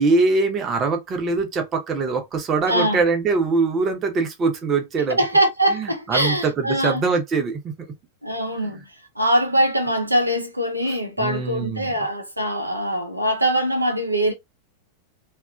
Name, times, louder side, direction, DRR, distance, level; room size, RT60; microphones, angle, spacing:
voice 1, 0.0-5.2 5.7-7.7 10.9-11.9, right 4 dB, 25° right, 0.8 m, -23 dB
voice 2, 2.7-3.0 5.1-7.0 8.2-8.8 9.2-14.3, right 1 dB, 85° right, 0.5 m, -22 dB
2.8 x 2.4 x 2.3 m
figure-of-eight pair, 90°, 0 cm